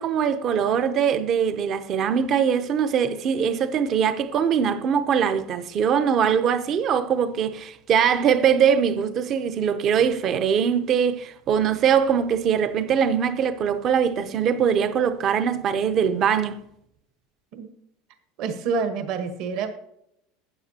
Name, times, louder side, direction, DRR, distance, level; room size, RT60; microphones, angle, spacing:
voice 1, 0.0-16.6, right 7 dB, 30° right, 0.6 m, -22 dB
voice 2, 18.4-19.7, right 5 dB, 45° right, 1.2 m, -27 dB
12.0 x 9.4 x 2.8 m
cardioid pair, 165°, 0 cm